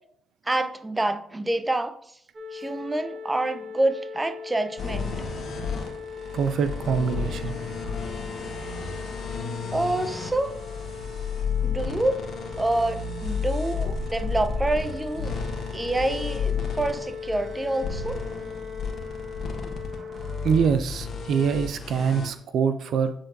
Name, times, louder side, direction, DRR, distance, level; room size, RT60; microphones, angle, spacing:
voice 1, 0.5-1.9 2.5-5.1 9.7-10.5 11.6-12.2 12.6-15.3 15.7-18.2, right 2 dB, 20° right, 11 dB, 0.6 m, -27 dB
sound 1, 2.3-20.8, left 5 dB, 40° right, 1.2 m, -39 dB
sound 2, 4.8-22.3, left 5 dB, 60° left, 1.4 m, -32 dB
voice 2, 6.3-7.6 20.4-23.1, right 6 dB, 70° right, 11 dB, 0.4 m, -24 dB
8.6 x 4.5 x 2.6 m, 0.68 s
hypercardioid pair, 55°, 0 cm